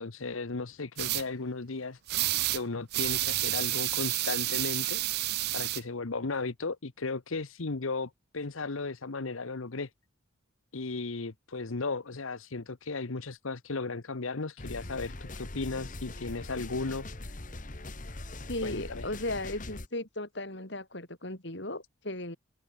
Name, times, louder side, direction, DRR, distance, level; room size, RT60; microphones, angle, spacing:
voice 1, 0.0-2.0 2.5-9.9 10.7-17.3 18.6-19.1, left 3 dB, 75° left, 1.0 m, -35 dB
sound 1, 1.0-1.2 2.1-2.6 2.9-5.8, right 17 dB, 50° right, 0.4 m, -30 dB
sound 2, 14.6-19.9, left 2 dB, 40° left, 1.5 m, -41 dB
voice 2, 18.5-22.4, left 1 dB, 55° left, 4.0 m, -36 dB
head